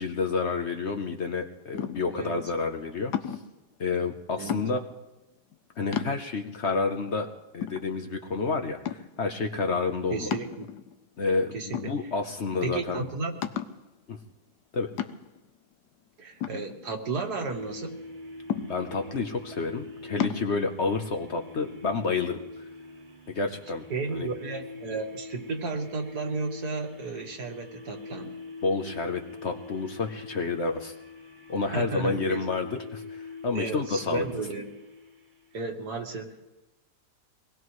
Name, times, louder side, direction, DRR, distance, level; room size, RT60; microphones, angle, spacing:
voice 1, 0.0-3.1 3.8-4.8 5.8-7.3 7.5-10.3 11.2-13.0 14.1-14.2 14.7-14.9 18.5-22.7 23.3-23.8 24.1-24.3 28.6-30.9 31.5-34.3, left 4 dB, 50° left, 4 dB, 1.0 m, -29 dB
sound 1, 1.7-2.2 3.1-3.6 4.5-5.0 5.5-5.6 5.9-6.6 7.1-7.2 7.6-8.4 8.8-9.3 10.3-11.0 11.7-12.4 12.7-12.8 13.4-13.8 15.0-15.5 16.4-17.3 18.5-19.1 20.2-20.5, left 9 dB, 80° left, 1.3 m, -33 dB
voice 2, 10.1-10.7 11.5-11.9 12.6-13.5 16.2-18.0 23.9-28.4 31.7-32.4 33.5-34.7 35.5-36.3, right 3 dB, 70° right, 3 dB, 2.0 m, -33 dB
sound 2, 17.4-35.7, left 3 dB, 30° right, 1.4 m, -44 dB
23.5 x 19.0 x 3.2 m, 1.0 s
omnidirectional pair, 1.7 m